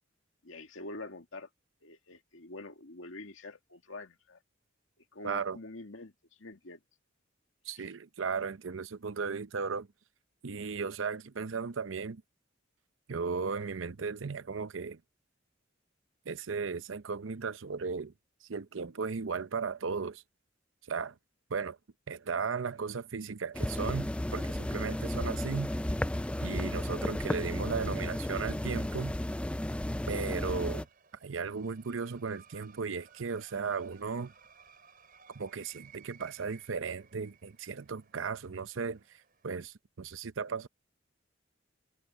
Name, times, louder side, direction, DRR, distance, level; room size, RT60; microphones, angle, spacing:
voice 1, 0.4-1.5 1.8-4.4 5.1-6.8 7.7-7.9, left 2 dB, 85° left, 2.1 m, -46 dB
voice 2, 5.2-5.6 7.7-9.9 10.4-12.2 13.1-15.0 16.3-18.1 18.5-20.2 20.9-21.1 21.5-21.8 22.1-25.7 26.4-29.1 30.1-30.9 31.2-34.3 35.3-40.7, right 5 dB, 80° right, 0.7 m, -36 dB
sound 1, 23.5-30.8, left 1 dB, 5° left, 0.3 m, -33 dB
sound 2, 29.5-39.5, right 7 dB, 50° right, 4.6 m, -60 dB
head